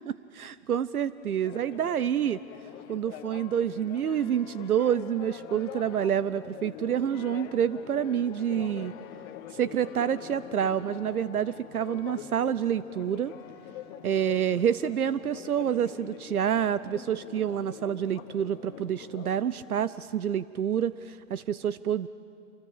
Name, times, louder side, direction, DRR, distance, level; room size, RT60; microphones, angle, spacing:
voice 1, 0.0-2.4 2.9-8.9 9.5-13.3 14.0-22.1, right 9 dB, 75° right, 16 dB, 0.8 m, -28 dB
Church bell, 1.4-19.8, left 10 dB, 25° left, 1.3 m, -44 dB
27.5 x 25.0 x 8.3 m, 2.5 s
hypercardioid pair, 135°, 44 cm